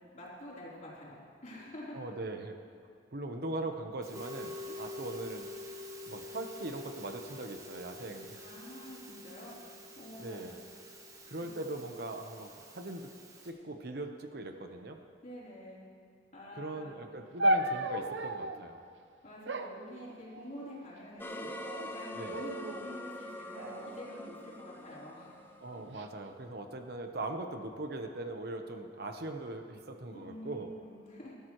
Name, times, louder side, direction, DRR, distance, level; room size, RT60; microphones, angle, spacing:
voice 1, 0.1-2.0 4.7-4.9 8.4-9.5 10.0-10.5 11.4-11.5 15.2-15.8 16.3-17.0 19.2-21.5 21.7-25.5 30.1-31.3, left 1 dB, 45° left, -6 dB, 3.8 m, -47 dB
voice 2, 1.9-2.6 3.1-5.5 6.1-8.4 10.2-10.6 11.2-13.1 13.4-15.0 16.6-18.8 22.1-22.4 25.6-30.7, right 2 dB, 60° right, 5 dB, 0.9 m, -40 dB
Musical instrument, 4.0-13.5, left 1 dB, 20° right, 1.4 m, -47 dB
sound 1, 17.4-18.7 19.5-20.7 21.4-21.9 22.3-22.9 23.6-24.8 25.6-26.1, right 1 dB, 90° right, 0.6 m, -34 dB
sound 2, 21.2-26.2, left 1 dB, 10° left, 0.6 m, -44 dB
19.5 x 12.5 x 3.1 m, 2.5 s
head